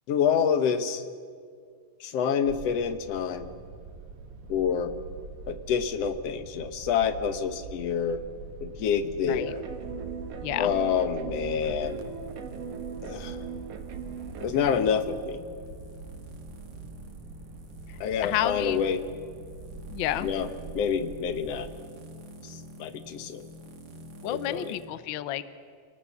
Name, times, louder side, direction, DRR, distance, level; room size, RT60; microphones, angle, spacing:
voice 1, 0.1-1.0 2.0-3.5 4.5-4.9 5.5-8.2 8.6-9.6 10.6-12.0 13.0-13.4 14.4-15.4 18.0-19.0 20.2-20.5 20.7-21.7 22.8-23.4 24.3-24.7, left 7 dB, 65° left, 10 dB, 2.1 m, -27 dB
sound 1, 2.4-21.7, right 4 dB, 90° right, 2.8 m, -44 dB
sound 2, 9.3-14.7, right 6 dB, 60° right, 2.5 m, -40 dB
voice 2, 10.4-10.7 17.9-18.8 19.9-20.3 24.2-25.4, left 13 dB, 85° left, 14 dB, 1.1 m, -31 dB
sound 3, 11.8-24.9, equal, 35° right, 2.4 m, -49 dB
26.5 x 19.0 x 7.3 m, 2.1 s
omnidirectional pair, 3.3 m